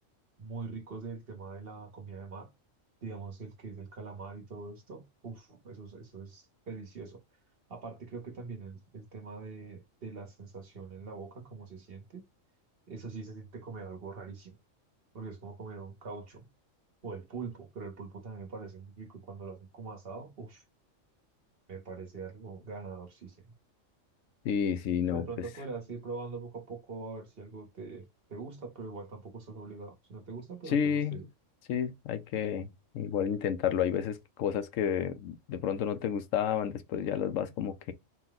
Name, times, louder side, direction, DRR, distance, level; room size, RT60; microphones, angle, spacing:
voice 1, 0.4-2.5 3.0-7.2 7.7-12.2 12.9-14.6 15.1-16.4 17.0-20.6 21.7-23.5 25.1-31.3, right 4 dB, 50° right, 1.2 m, -43 dB
voice 2, 24.4-25.5 30.7-31.2 31.7-37.9, left 8 dB, 75° left, 1.0 m, -31 dB
4.2 x 2.2 x 3.9 m
omnidirectional pair, 1.4 m